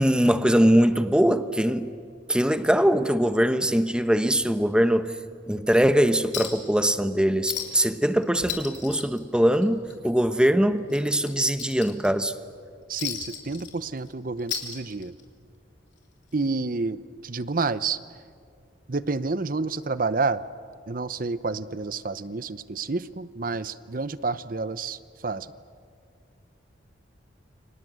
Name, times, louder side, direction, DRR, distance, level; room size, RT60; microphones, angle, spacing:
voice 1, 0.0-1.9 2.3-5.1 5.5-12.3, equal, 5° right, 10 dB, 1.0 m, -22 dB
Chink clink, 6.3-6.7 7.0-7.1 7.5-7.9 8.2-9.9 10.3-10.4 10.9-12.3 13.0-14.1 14.4-15.3 16.4-16.5, left 9 dB, 70° left, 3.5 m, -35 dB
voice 2, 12.9-15.1 16.3-18.0 18.9-20.4 20.9-25.5, right 3 dB, 50° right, 15 dB, 0.8 m, -29 dB
29.0 x 25.0 x 8.0 m, 2.2 s
head